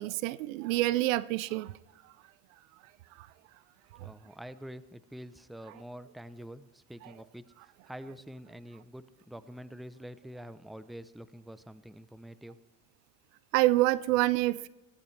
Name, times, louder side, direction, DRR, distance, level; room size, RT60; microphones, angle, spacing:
voice 1, 0.0-1.7 3.2-3.3 4.0-4.1 13.5-14.7, right 17 dB, 85° right, 0.6 m, -27 dB
voice 2, 4.0-12.6, equal, ahead, 0.6 m, -46 dB
17.5 x 15.0 x 3.3 m
supercardioid pair, 85°, 38 cm